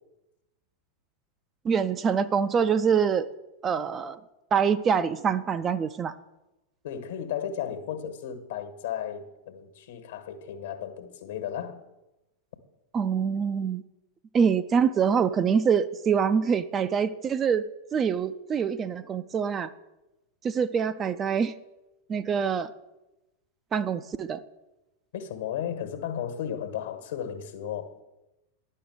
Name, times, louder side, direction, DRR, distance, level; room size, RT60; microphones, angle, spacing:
voice 1, 1.6-3.3 3.6-4.2 4.5-6.2 12.9-13.8 14.3-19.7 20.4-21.5 22.1-22.7 23.7-24.4, right 6 dB, 25° right, 0.5 m, -25 dB
voice 2, 6.8-11.8 25.1-28.0, left 9 dB, 60° left, 1.4 m, -34 dB
10.5 x 6.4 x 7.9 m
figure-of-eight pair, 90°, 0 cm